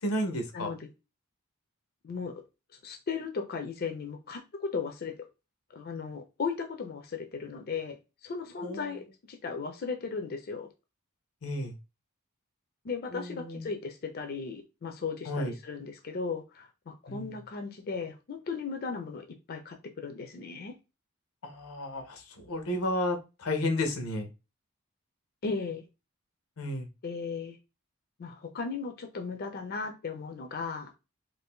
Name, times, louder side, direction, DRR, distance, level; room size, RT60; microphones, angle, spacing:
voice 1, 0.0-0.7 8.6-9.0 11.4-11.7 13.1-13.7 15.2-15.5 17.1-17.3 21.4-24.3 26.6-26.9, left 1 dB, 90° left, 5 dB, 0.7 m, -32 dB
voice 2, 2.0-2.4 2.8-5.2 5.7-8.0 8.2-10.7 12.8-20.7 25.4-25.8 27.0-27.6 28.2-30.9, left 5 dB, 45° left, 5 dB, 0.4 m, -36 dB
2.6 x 2.5 x 3.5 m, 0.28 s
head